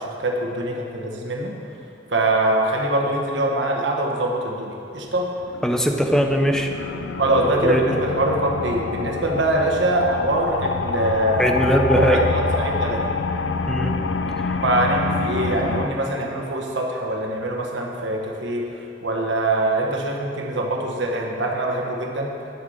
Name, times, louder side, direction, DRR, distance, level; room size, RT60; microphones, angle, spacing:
voice 1, 0.0-1.5 2.1-5.3 7.2-11.5 11.9-13.0 14.6-22.3, right 1 dB, 85° right, 0 dB, 1.2 m, -23 dB
sound 1, 5.2-15.9, left 4 dB, 85° left, 0.5 m, -27 dB
voice 2, 5.6-6.7 7.4-8.0 11.4-12.2 13.7-13.9 14.4-14.6, equal, 5° left, 3 dB, 0.7 m, -20 dB
11.0 x 5.5 x 6.5 m, 2.6 s
head